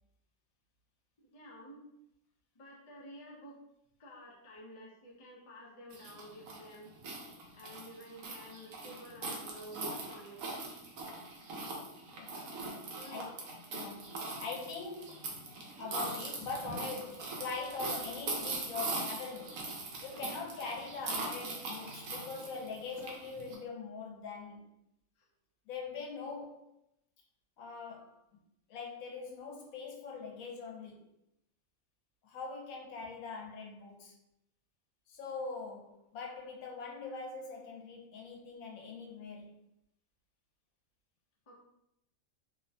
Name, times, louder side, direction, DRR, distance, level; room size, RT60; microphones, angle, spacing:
voice 1, 1.2-1.9 2.6-3.6 4.0-6.9 7.5-10.5 13.0-13.3 20.1-20.2 41.5-41.6, equal, 45° left, 0.4 m, -51 dB
sound 1, 5.9-23.6, right 2 dB, 80° right, 1.0 m, -41 dB
voice 2, 13.1-13.4 13.7-15.3 15.8-19.7 20.0-24.7 25.7-26.7 27.6-28.2 28.7-31.1 32.2-34.2 35.1-39.6, left 4 dB, 90° left, 1.1 m, -43 dB
2.8 x 2.1 x 2.6 m
omnidirectional pair, 1.4 m